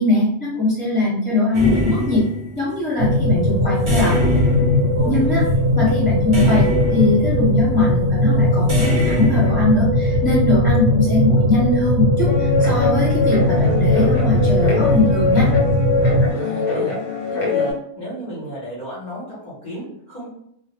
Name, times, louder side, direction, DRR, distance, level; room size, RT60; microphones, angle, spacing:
voice 1, 0.0-2.2 2.6-4.1 5.0-5.4 5.7-15.5, left 2 dB, 5° left, -11 dB, 1.0 m, -21 dB
sound 1, 1.5-2.8 3.9-5.5 6.3-7.5 8.7-9.5, equal, 30° right, 0.7 m, -24 dB
sound 2, 3.0-16.3, left 1 dB, 85° right, 1.0 m, -18 dB
voice 2, 4.9-5.4 16.3-17.0 17.3-20.3, right 1 dB, 45° left, -7 dB, 0.8 m, -32 dB
Guitar, 12.3-17.7, left 4 dB, 80° left, 1.0 m, -23 dB
2.2 x 2.0 x 2.9 m, 0.71 s
omnidirectional pair, 1.3 m